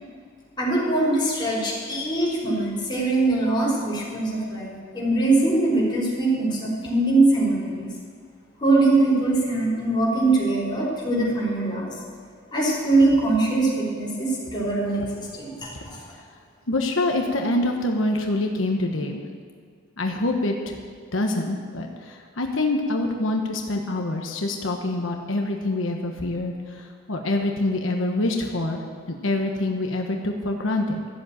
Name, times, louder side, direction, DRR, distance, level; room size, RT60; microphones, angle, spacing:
voice 1, 0.6-7.9 8.6-11.9 12.5-16.0, right 2 dB, 25° left, -5 dB, 4.7 m, -22 dB
voice 2, 16.7-19.2 20.0-20.8 21.1-28.8 29.1-31.0, left 2 dB, 90° left, 2 dB, 1.2 m, -25 dB
13.5 x 7.7 x 8.9 m, 2.2 s
head